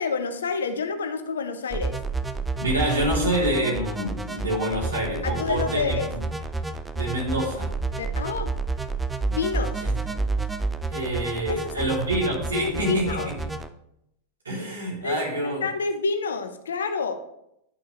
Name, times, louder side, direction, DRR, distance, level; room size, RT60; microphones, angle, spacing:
voice 1, 0.0-2.0 5.2-6.1 8.0-8.5 9.3-9.9 11.5-11.9 12.5-13.3 15.0-17.1, left 5 dB, 70° left, 8 dB, 0.7 m, -28 dB
sound 1, 1.7-13.7, right 3 dB, 10° right, 0.4 m, -30 dB
voice 2, 2.6-6.2 6.9-7.7 9.8-10.2 10.9-13.3 14.4-15.6, right 1 dB, 70° right, -4 dB, 3.1 m, -27 dB
11.0 x 5.5 x 3.1 m, 0.80 s
figure-of-eight pair, 90°, 0 cm